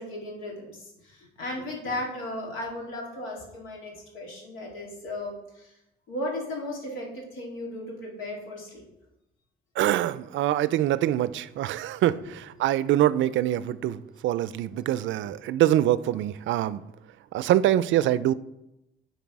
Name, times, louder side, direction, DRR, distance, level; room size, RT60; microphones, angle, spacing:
voice 1, 0.0-5.8 6.1-8.8, left 1 dB, 90° left, -1 dB, 2.2 m, -36 dB
voice 2, 9.8-16.8 17.3-18.3, right 12 dB, 75° right, 16 dB, 0.4 m, -24 dB
9.5 x 4.1 x 4.7 m, 0.88 s
cardioid pair, 90°, 20 cm